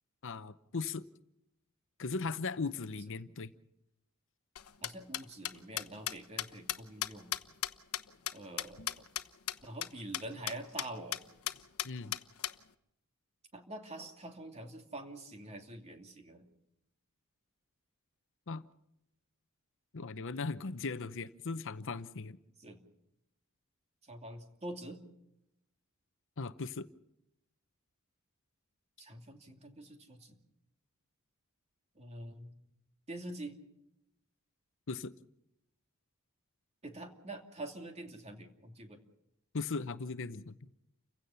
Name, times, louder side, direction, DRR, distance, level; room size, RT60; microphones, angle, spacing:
voice 1, 0.2-1.0 2.0-3.5 11.8-12.1 18.5-18.6 19.9-22.4 26.4-26.9 34.9-35.1 39.5-40.6, left 4 dB, 60° left, 13 dB, 0.8 m, -38 dB
sound 1, 4.6-9.2 9.5-9.6 9.8-9.9 10.1-10.2 10.5-10.9 11.1-11.2 11.5-12.5, left 12 dB, 85° left, 1.1 m, -35 dB
voice 2, 4.8-7.3 8.3-8.9 9.6-11.2 13.5-16.5 22.6-22.8 24.0-25.0 29.0-30.4 31.9-32.5 33.1-33.6 36.8-39.0, right 1 dB, 30° right, 4 dB, 2.7 m, -46 dB
30.0 x 16.0 x 5.7 m, 0.82 s
head